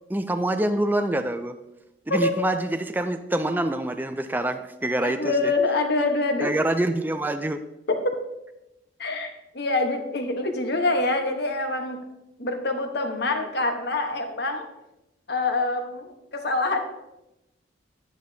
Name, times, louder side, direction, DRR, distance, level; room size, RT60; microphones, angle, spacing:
voice 1, 0.1-1.6 2.1-5.5 6.4-7.6, right 1 dB, 10° right, 8 dB, 0.4 m, -26 dB
voice 2, 5.0-6.5 7.9-8.0 9.0-12.0 12.4-14.7 15.3-16.8, left 2 dB, 55° left, 5 dB, 1.1 m, -25 dB
11.0 x 9.3 x 2.8 m, 0.91 s
head